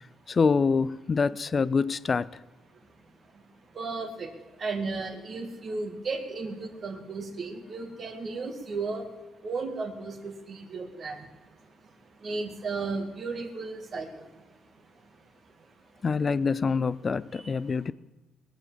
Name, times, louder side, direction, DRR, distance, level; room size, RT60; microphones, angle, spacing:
voice 1, 0.3-2.3 16.0-17.9, left 5 dB, 30° left, 0.4 m, -25 dB
voice 2, 2.7-16.0 17.3-17.5, right 3 dB, 40° right, 2.2 m, -36 dB
21.0 x 7.3 x 7.5 m
cardioid pair, 125°, 0 cm